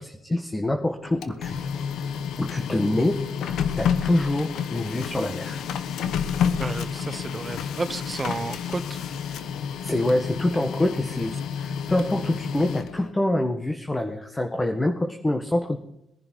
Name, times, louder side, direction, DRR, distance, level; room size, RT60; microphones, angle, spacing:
voice 1, 0.0-1.6 2.4-5.6 9.8-15.8, left 1 dB, 20° left, 5 dB, 1.6 m, -26 dB
Printer, 1.0-13.1, left 7 dB, 70° left, 1.2 m, -30 dB
voice 2, 6.6-9.0, right 3 dB, 30° right, 15 dB, 1.0 m, -32 dB
21.0 x 11.0 x 4.6 m, 0.82 s
supercardioid pair, 60°, 0 cm